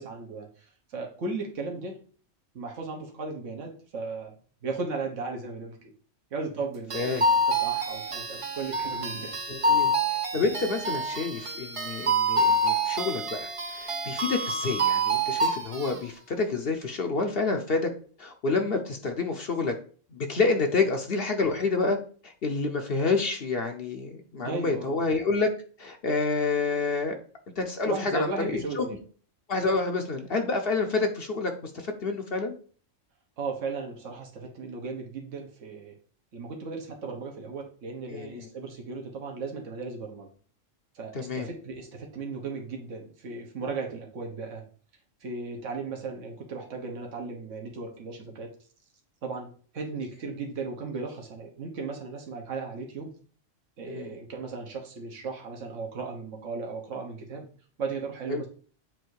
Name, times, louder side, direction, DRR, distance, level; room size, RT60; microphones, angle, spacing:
voice 1, 0.0-2.0 2.5-4.3 4.6-5.9 6.3-9.4 9.6-9.9 20.8-20.9 24.4-25.0 27.8-29.0 33.4-35.9 36.3-40.3 40.9-44.7 45.2-48.5 49.2-53.1 53.8-57.5 57.8-58.5, right 4 dB, 70° right, 1 dB, 1.5 m, -36 dB
sound 1, 6.9-16.0, right 1 dB, 45° right, 0.4 m, -27 dB
voice 2, 9.5-9.9 10.3-17.9 18.2-19.7 20.1-22.0 22.2-25.5 25.8-27.2 27.6-28.8 29.5-32.6 38.1-38.5 41.1-41.5 53.9-54.1 58.3-58.4, left 3 dB, 55° left, 4 dB, 0.9 m, -28 dB
7.7 x 2.7 x 4.6 m, 0.43 s
omnidirectional pair, 1.3 m